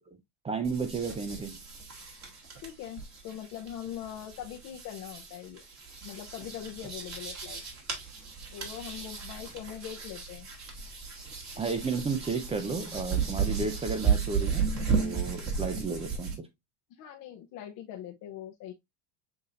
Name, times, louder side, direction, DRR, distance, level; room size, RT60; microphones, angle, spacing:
voice 1, 0.4-1.6 11.6-16.5, right 4 dB, 15° right, 0.4 m, -33 dB
sound 1, 0.6-16.4, right 6 dB, 35° right, 1.9 m, -34 dB
voice 2, 2.6-5.6 6.0-7.6 8.5-10.5 17.0-18.7, left 10 dB, 45° left, 0.7 m, -42 dB
6.8 x 2.7 x 2.5 m
supercardioid pair, 110°, 50 cm